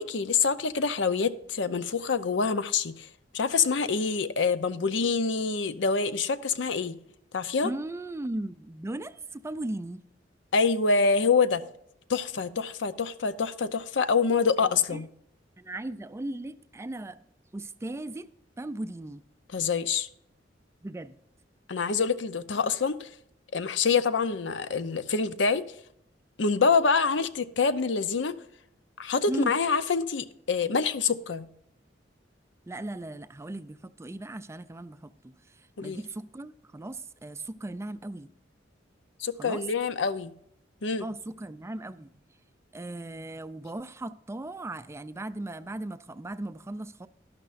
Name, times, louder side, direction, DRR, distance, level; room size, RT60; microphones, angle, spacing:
voice 1, 0.0-3.1 3.3-7.0 7.3-7.7 10.5-11.6 12.1-15.1 19.5-20.1 21.7-23.1 23.5-25.6 26.4-28.4 29.0-31.5 35.8-36.0 39.2-40.3 40.8-41.1, left 5 dB, 75° left, 0.6 m, -26 dB
voice 2, 7.6-10.0 14.6-15.0 15.6-17.2 17.5-18.3 18.6-19.2 20.8-21.2 29.3-29.5 32.7-35.3 35.8-38.3 39.4-39.6 41.0-42.1 42.7-47.1, right 2 dB, 15° right, 0.4 m, -37 dB
12.0 x 12.0 x 2.5 m
head